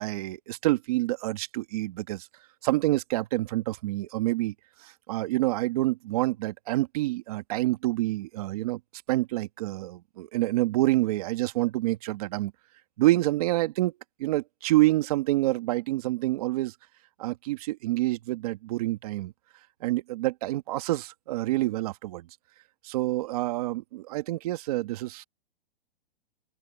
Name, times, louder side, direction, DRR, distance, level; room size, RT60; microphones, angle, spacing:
voice 1, 0.0-2.3 2.6-4.5 4.8-8.8 9.1-12.5 13.0-13.9 14.2-16.7 17.2-19.3 19.8-22.3 22.8-25.2, right 17 dB, 40° right, 1.6 m, -27 dB
open air
hypercardioid pair, 165°, 30 cm